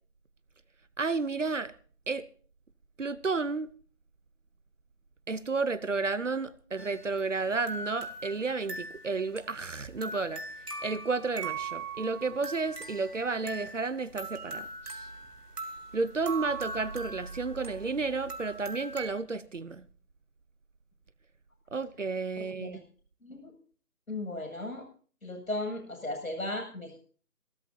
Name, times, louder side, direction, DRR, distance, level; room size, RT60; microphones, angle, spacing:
voice 1, 1.0-1.7 2.1-2.2 3.0-3.7 5.3-10.4 10.8-15.1 15.9-19.8 21.7-22.8, right 4 dB, 55° right, 0.9 m, -32 dB
sound 1, 6.8-19.1, right 3 dB, 85° right, 2.9 m, -41 dB
voice 2, 22.4-22.8 23.2-23.5 24.1-24.8 25.2-27.0, left 2 dB, 65° left, 7.9 m, -36 dB
27.0 x 13.5 x 2.9 m
figure-of-eight pair, 155°, 45 cm